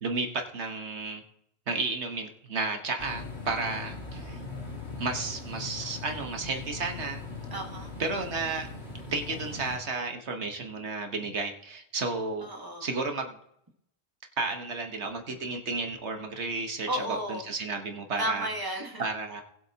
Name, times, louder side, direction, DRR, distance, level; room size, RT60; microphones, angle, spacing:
voice 1, 0.0-1.2 1.7-4.4 5.0-7.2 8.0-8.7 9.1-12.5 12.8-13.4 14.4-18.5 19.0-19.4, right 3 dB, 85° right, 4 dB, 1.6 m, -32 dB
sound 1, 3.0-9.8, left 3 dB, 75° left, 2.7 m, -40 dB
voice 2, 7.5-7.9 12.4-12.8 16.9-17.4 18.2-19.0, right 1 dB, 20° right, 2 dB, 1.7 m, -33 dB
20.0 x 8.0 x 2.9 m, 0.74 s
omnidirectional pair, 1.1 m